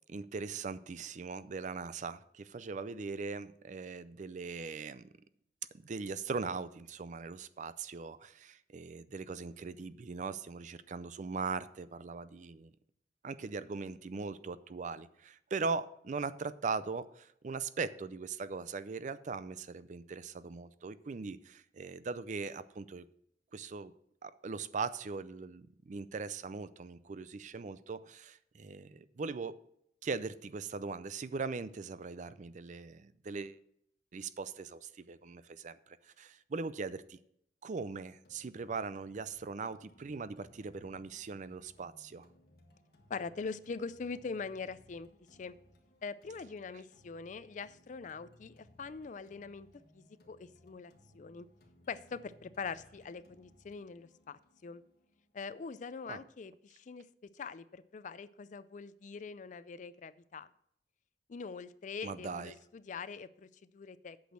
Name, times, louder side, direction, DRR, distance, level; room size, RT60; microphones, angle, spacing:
voice 1, 0.1-5.1 5.7-12.7 13.2-23.0 23.5-23.9 24.2-29.6 30.0-33.6 34.1-37.2 37.6-42.3 56.1-56.2 62.0-62.6, right 4 dB, 45° right, 15 dB, 0.4 m, -40 dB
sound 1, 38.2-56.2, left 1 dB, 60° left, 1.6 m, -64 dB
voice 2, 43.1-45.1 45.4-45.5 46.0-49.7 49.9-51.5 51.9-54.8 55.3-57.1 57.3-60.5 61.3-64.3, left 5 dB, 45° left, 16 dB, 0.4 m, -43 dB
8.4 x 6.1 x 6.2 m, 0.72 s
head